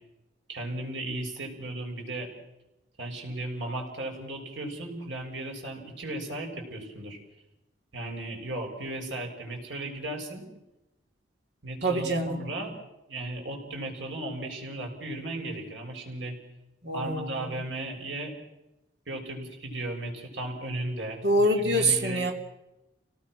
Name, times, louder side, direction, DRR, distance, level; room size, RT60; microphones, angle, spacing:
voice 1, 0.5-2.3 3.0-7.2 7.9-10.5 11.6-12.7 13.1-16.4 16.9-18.3 19.1-21.2 21.6-22.3, right 1 dB, 90° right, 1 dB, 6.5 m, -36 dB
voice 2, 11.8-12.4 16.8-17.6 21.2-22.3, right 1 dB, 65° right, 2 dB, 2.8 m, -25 dB
30.0 x 18.5 x 6.3 m, 0.96 s
head